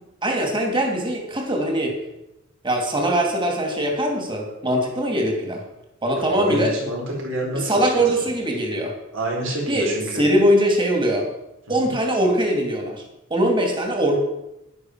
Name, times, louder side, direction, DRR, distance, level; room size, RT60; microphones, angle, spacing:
voice 1, 0.2-1.9 2.6-5.6 6.0-6.7 7.5-8.9 9.7-11.3 11.7-13.0 13.3-14.2, right 1 dB, 25° right, 2 dB, 2.8 m, -21 dB
voice 2, 6.1-8.1 9.1-10.3 11.8-11.9, right 1 dB, 70° right, -1 dB, 4.5 m, -28 dB
11.0 x 11.0 x 6.5 m, 0.88 s
head